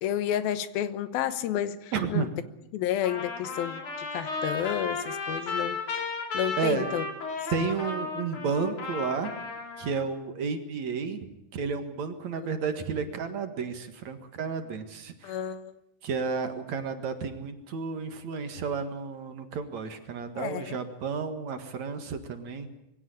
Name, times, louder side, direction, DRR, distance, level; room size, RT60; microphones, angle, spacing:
voice 1, 0.0-2.3 2.7-5.8 6.3-7.1 7.5-7.7 15.2-15.7 20.4-20.8, left 10 dB, 85° left, 13 dB, 2.9 m, -31 dB
voice 2, 1.9-2.3 6.6-6.9 7.5-9.3 9.8-11.3 11.5-15.4 16.0-22.8, right 5 dB, 55° right, 7 dB, 2.7 m, -32 dB
Trumpet, 3.0-10.1, left 3 dB, 55° left, 4.5 m, -34 dB
23.0 x 17.0 x 9.8 m, 0.89 s
omnidirectional pair, 4.2 m